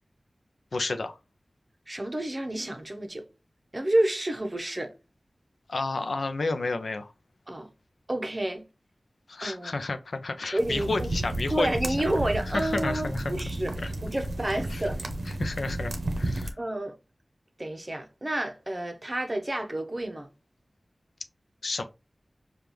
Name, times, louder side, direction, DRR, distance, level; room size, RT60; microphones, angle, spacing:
voice 1, 0.7-1.2 5.7-7.1 9.3-11.7 12.5-13.4 13.8-13.9 14.7-14.8 15.4-16.6 21.6-21.8, left 3 dB, 85° left, 0.4 m, -31 dB
voice 2, 1.9-3.3 3.7-4.9 7.5-7.7 8.1-8.6 9.4-9.7 10.5-11.1 11.5-15.0 16.6-17.0 17.6-20.3, right 1 dB, 30° right, 0.7 m, -30 dB
sound 1, 10.6-16.5, right 1 dB, 85° right, 0.6 m, -32 dB
5.1 x 2.3 x 3.0 m
wide cardioid pair, 55°, 0 cm